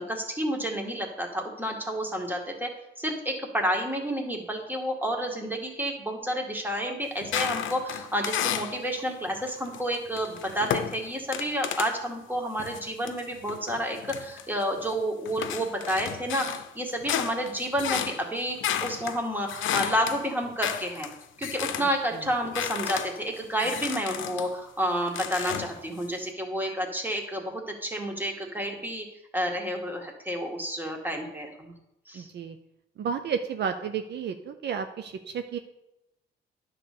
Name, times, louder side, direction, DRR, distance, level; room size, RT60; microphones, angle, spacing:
voice 1, 0.0-2.7 3.0-21.1 21.4-29.1 29.3-31.7 32.1-32.3, equal, 10° right, 1 dB, 1.9 m, -30 dB
sound 1, 7.2-8.8 9.3-12.0 12.6-14.9 15.3-22.0 22.3-24.6 25.1-26.1, left 10 dB, 75° left, 0.7 m, -33 dB
voice 2, 32.1-32.6 33.0-35.6, right 7 dB, 60° right, 8 dB, 0.6 m, -32 dB
9.8 x 4.1 x 6.7 m, 0.89 s
cardioid pair, 90°, 20 cm